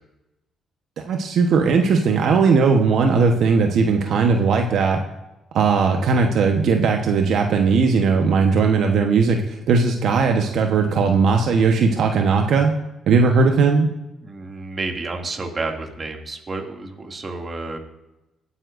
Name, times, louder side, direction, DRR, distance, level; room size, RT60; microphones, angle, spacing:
voice 1, 1.0-5.0 5.5-12.7 13.1-13.9, right 4 dB, 70° right, 3 dB, 1.0 m, -18 dB
voice 2, 14.2-17.8, right 3 dB, 35° right, 2 dB, 2.3 m, -30 dB
18.5 x 9.7 x 2.6 m, 0.97 s
cardioid pair, 90°, 0 cm